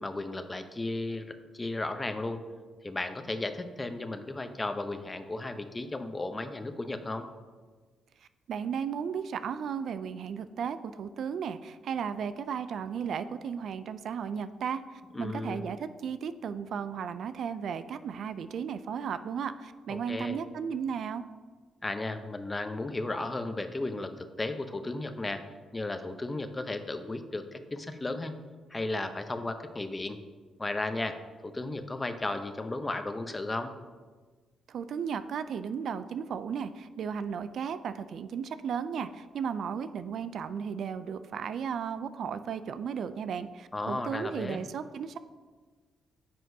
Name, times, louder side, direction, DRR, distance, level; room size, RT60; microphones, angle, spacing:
voice 1, 0.0-2.4 2.8-7.3 15.1-15.7 20.1-20.4 21.8-25.4 25.7-28.4 28.7-30.2 30.6-33.7 43.7-44.6, left 2 dB, 25° left, 9 dB, 0.7 m, -34 dB
voice 2, 8.5-21.3 34.7-45.2, right 7 dB, 70° right, 12 dB, 0.3 m, -35 dB
9.2 x 6.0 x 2.7 m, 1.4 s
supercardioid pair, 60°, 0 cm